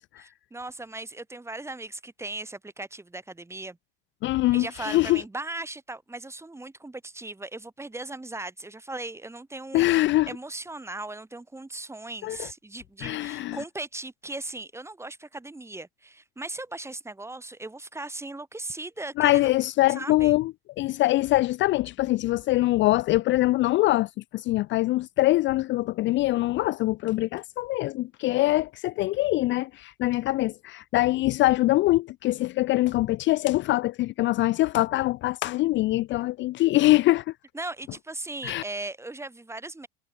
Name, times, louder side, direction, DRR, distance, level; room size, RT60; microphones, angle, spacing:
voice 1, 0.2-3.8 4.5-19.5 19.9-20.3 37.5-39.9, right 2 dB, 10° right, 2.7 m, -38 dB
voice 2, 4.2-5.2 9.7-10.3 12.2-12.5 13.0-13.6 19.2-20.5 20.8-37.3 38.4-38.6, left 17 dB, 40° left, 0.5 m, -23 dB
hypercardioid pair, 85°, 29 cm